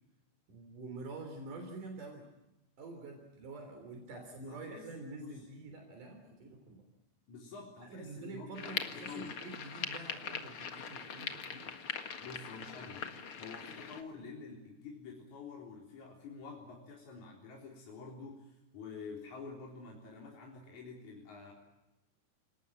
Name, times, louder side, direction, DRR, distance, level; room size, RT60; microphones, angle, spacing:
voice 1, 0.5-2.3 2.8-6.9 7.9-11.8, right 3 dB, 80° right, 4 dB, 5.0 m, -47 dB
voice 2, 4.1-4.9 5.2-5.4 6.2-6.3 7.3-9.4 12.2-13.1 13.4-21.5, left 4 dB, 65° left, -2 dB, 5.3 m, -48 dB
sound 1, 8.5-14.0, left 6 dB, 50° left, 2.3 m, -42 dB
29.0 x 19.0 x 9.0 m, 1.0 s
omnidirectional pair, 3.6 m